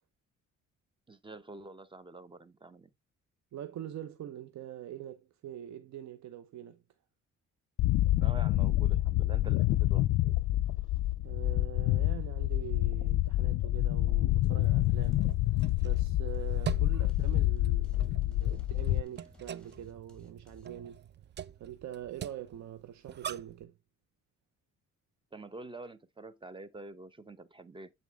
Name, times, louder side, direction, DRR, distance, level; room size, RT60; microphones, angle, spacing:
voice 1, 1.1-2.9 8.2-10.3 25.3-27.9, right 3 dB, 15° right, 0.8 m, -47 dB
voice 2, 3.5-6.8 11.2-15.3 15.8-21.0 21.6-23.7, right 11 dB, 65° right, 0.8 m, -44 dB
sound 1, 7.8-19.0, left 16 dB, 75° left, 0.5 m, -28 dB
sound 2, 14.5-23.7, right 10 dB, 35° right, 0.4 m, -44 dB
sound 3, 14.8-20.7, left 3 dB, 5° left, 2.2 m, -56 dB
8.1 x 3.9 x 3.4 m
cardioid pair, 90°, 30 cm